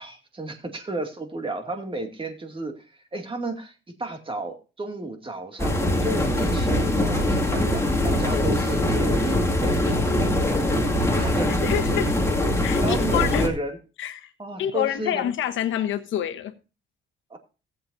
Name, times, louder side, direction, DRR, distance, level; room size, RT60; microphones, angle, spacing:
voice 1, 0.0-10.4 11.1-12.0 12.8-13.8 14.4-15.2 17.3-17.4, right 2 dB, 25° right, 2.4 m, -33 dB
sound 1, 5.6-13.5, left 1 dB, 15° left, 2.3 m, -22 dB
voice 2, 11.6-12.1 12.6-13.4 14.0-14.3 14.6-16.5, left 11 dB, 80° left, 1.1 m, -27 dB
18.0 x 7.7 x 2.7 m
cardioid pair, 90°, 20 cm